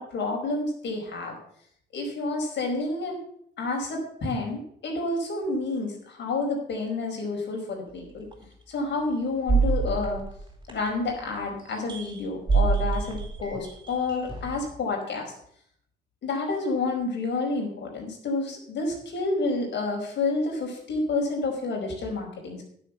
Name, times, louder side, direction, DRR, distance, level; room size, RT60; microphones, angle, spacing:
voice 1, 0.0-1.4 1.9-3.2 3.6-8.3 8.7-10.2 10.7-15.3 16.2-22.6, left 3 dB, 60° left, 1 dB, 4.9 m, -29 dB
sound 1, 8.3-8.4 9.5-11.1 11.9-12.2 12.5-14.7, right 4 dB, 20° right, 4.0 m, -26 dB
10.5 x 6.9 x 8.2 m, 0.67 s
cardioid pair, 90°, 20 cm